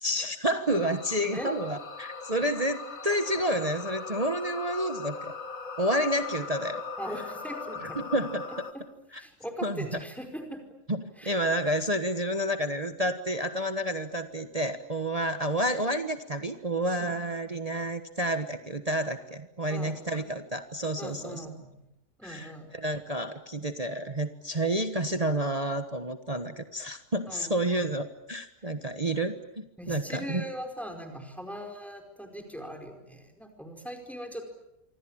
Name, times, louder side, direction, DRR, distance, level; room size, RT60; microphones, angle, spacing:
voice 1, 0.0-5.3 5.8-6.8 8.0-8.5 9.6-9.8 10.9-21.4 22.2-30.4, right 1 dB, 25° right, 8 dB, 1.4 m, -30 dB
sound 1, 0.7-8.7, left 5 dB, 55° left, 2.2 m, -39 dB
voice 2, 7.0-8.0 8.7-8.8 9.2-10.6 11.2-11.4 17.0-17.1 19.7-19.9 21.0-21.9 22.2-22.7 27.3-27.9 29.8-34.4, equal, ahead, 4 dB, 4.8 m, -40 dB
27.0 x 25.5 x 8.8 m, 0.87 s
omnidirectional pair, 1.7 m